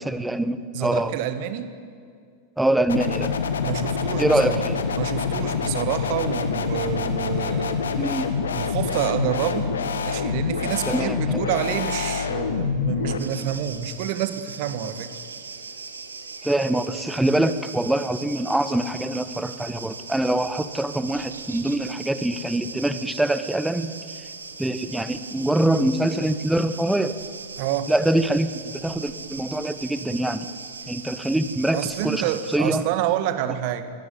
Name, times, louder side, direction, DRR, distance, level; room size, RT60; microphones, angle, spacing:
voice 1, 0.1-1.1 2.6-3.3 4.2-4.8 8.0-8.3 10.9-11.4 16.4-23.9 24.6-27.2 27.9-30.5 30.9-32.8, right 1 dB, 5° right, 13 dB, 1.2 m, -24 dB
voice 2, 0.7-1.7 3.6-4.6 4.9-7.9 8.5-9.8 10.0-15.1 27.6-27.9 31.7-33.9, right 10 dB, 45° right, 11 dB, 1.8 m, -28 dB
sound 1, 2.9-13.2, left 5 dB, 65° left, 1.9 m, -26 dB
sound 2, 13.2-32.6, right 4 dB, 75° right, 1.5 m, -39 dB
23.5 x 18.0 x 9.4 m, 2.2 s
figure-of-eight pair, 90°, 0 cm